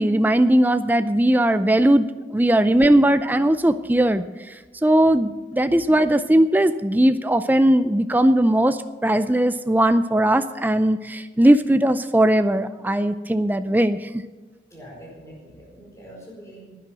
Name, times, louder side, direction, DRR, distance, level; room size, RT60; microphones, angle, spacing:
voice 1, 0.0-4.3 4.8-14.1, right 1 dB, 10° right, 11 dB, 0.4 m, -19 dB
voice 2, 14.7-16.8, equal, 15° left, -3 dB, 4.5 m, -43 dB
11.0 x 9.4 x 7.5 m, 1.3 s
head